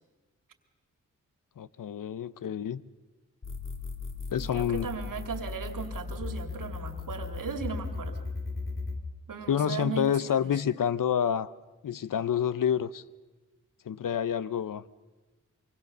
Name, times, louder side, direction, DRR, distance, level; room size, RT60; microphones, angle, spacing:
voice 1, 1.6-2.8 4.3-4.9 9.5-11.5 11.8-13.0 13.9-14.8, left 8 dB, 80° left, 0.8 m, -28 dB
sound 1, 3.4-9.0, left 4 dB, 40° left, 2.4 m, -37 dB
voice 2, 4.4-8.2 9.3-10.5, right 6 dB, 85° right, 2.4 m, -37 dB
24.5 x 23.5 x 6.7 m
cardioid pair, 70°, 32 cm